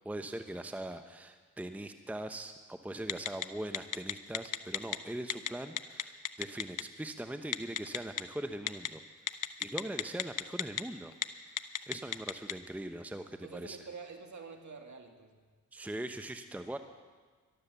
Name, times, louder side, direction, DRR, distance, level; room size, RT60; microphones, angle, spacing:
voice 1, 0.0-9.0 9.6-11.1 11.9-13.8 15.7-16.8, right 1 dB, 5° right, 8 dB, 0.9 m, -41 dB
Telephone, 3.1-3.4 3.7-5.0 5.3-5.5 5.8-6.8 7.5-8.2 8.7-8.9 9.3-10.8 11.1-11.2 11.6-12.5, left 10 dB, 55° left, 0.8 m, -32 dB
voice 2, 13.4-15.4, right 4 dB, 50° right, 5 dB, 2.0 m, -47 dB
13.0 x 12.0 x 6.9 m, 1.4 s
hypercardioid pair, 40°, 38 cm